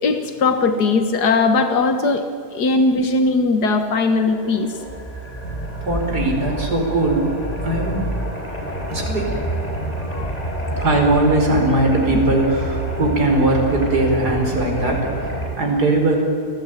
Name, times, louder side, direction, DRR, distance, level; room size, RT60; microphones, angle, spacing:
voice 1, 0.0-2.2 2.5-4.7 10.1-10.3, left 3 dB, 90° left, 7 dB, 2.0 m, -19 dB
sound 1, 3.9-15.5, right 1 dB, 25° left, 5.7 m, -27 dB
voice 2, 5.8-7.3 7.6-8.0 8.9-9.3 10.0-10.1 10.8-16.2, right 2 dB, 80° right, 1 dB, 5.4 m, -19 dB
29.5 x 18.5 x 9.2 m, 2.3 s
omnidirectional pair, 1.7 m